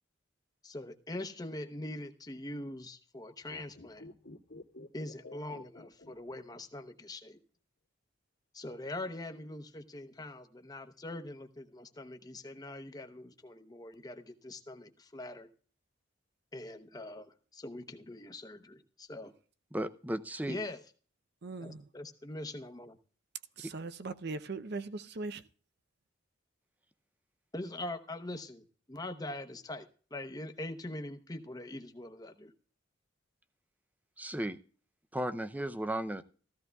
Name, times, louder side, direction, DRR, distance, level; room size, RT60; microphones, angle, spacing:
voice 1, 0.6-4.0 4.9-7.4 8.5-15.5 16.5-19.3 20.5-20.8 21.6-23.0 27.5-32.5, left 1 dB, 20° left, 0.8 m, -43 dB
sound 1, 3.4-6.8 7.1-7.2, left 2 dB, 90° left, 1.7 m, -51 dB
voice 2, 19.7-20.6 34.2-34.6 35.1-36.2, right 1 dB, 10° right, 0.5 m, -35 dB
voice 3, 21.4-21.9 23.6-25.5, right 3 dB, 55° right, 0.6 m, -40 dB
14.5 x 14.5 x 2.3 m
head